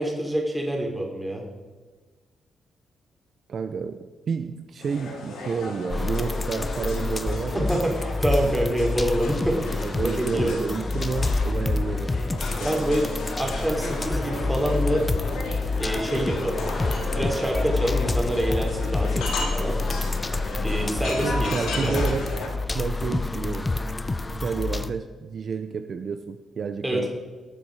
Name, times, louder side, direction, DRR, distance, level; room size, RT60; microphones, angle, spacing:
voice 1, 0.0-1.4 7.5-10.6 12.6-13.1 13.4-15.0 15.8-16.6 17.1-19.7 20.6-22.0 26.8-27.1, right 1 dB, 5° right, 0 dB, 3.4 m, -26 dB
voice 2, 3.5-7.7 9.8-12.2 12.6-12.8 21.2-22.3 22.7-23.7 24.3-27.1, right 6 dB, 55° right, 8 dB, 0.6 m, -30 dB
sound 1, 4.8-22.5, left 2 dB, 80° left, 2.9 m, -35 dB
sound 2, 5.9-24.9, left 3 dB, 20° left, 0.7 m, -28 dB
19.0 x 7.1 x 4.8 m, 1.4 s
cardioid pair, 95°, 0 cm